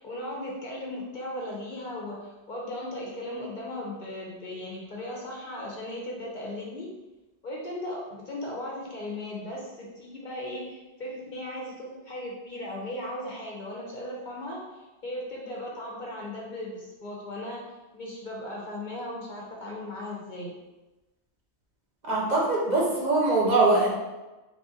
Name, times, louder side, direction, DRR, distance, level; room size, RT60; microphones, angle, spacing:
voice 1, 0.0-6.9 7.4-17.6 17.9-20.6, left 1 dB, 50° left, -3 dB, 0.8 m, -37 dB
voice 2, 22.0-23.9, right 2 dB, 45° right, -4 dB, 0.8 m, -22 dB
3.4 x 2.5 x 3.7 m, 1.1 s
omnidirectional pair, 1.1 m